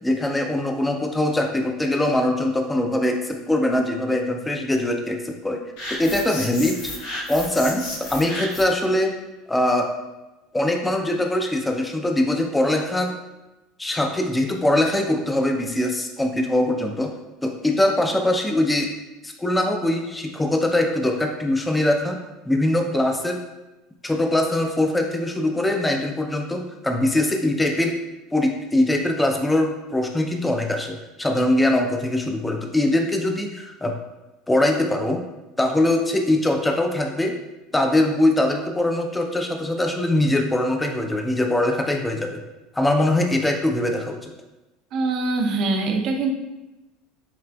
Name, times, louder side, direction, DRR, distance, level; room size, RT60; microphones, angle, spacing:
voice 1, 0.0-5.6 5.9-6.8 7.3-9.1 9.5-9.9 10.5-13.1 13.8-17.1 17.4-18.9 19.2-22.2 22.5-23.4 24.0-28.0 28.3-34.0 34.5-35.2 35.6-37.4 37.7-42.4 42.7-44.3, left 1 dB, 10° left, 3 dB, 0.4 m, -22 dB
sound 1, 5.8-8.8, left 1 dB, 70° left, 0.9 m, -33 dB
voice 2, 44.9-46.3, right 3 dB, 55° right, 4 dB, 0.5 m, -23 dB
5.7 x 2.4 x 2.2 m, 1.0 s
hypercardioid pair, 75°, 0 cm